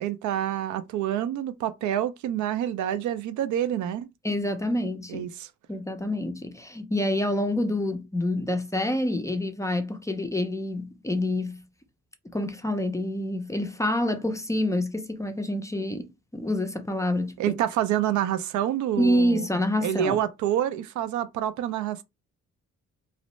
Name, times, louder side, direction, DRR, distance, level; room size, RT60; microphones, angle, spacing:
voice 1, 0.0-4.1 5.1-5.5 17.4-19.5 19.8-22.0, right 11 dB, 75° right, 0.4 m, -27 dB
voice 2, 4.2-5.3 5.7-11.6 12.3-17.6 19.0-20.2, left 1 dB, 10° left, 0.4 m, -27 dB
2.6 x 2.0 x 3.0 m
cardioid pair, 90°, 30 cm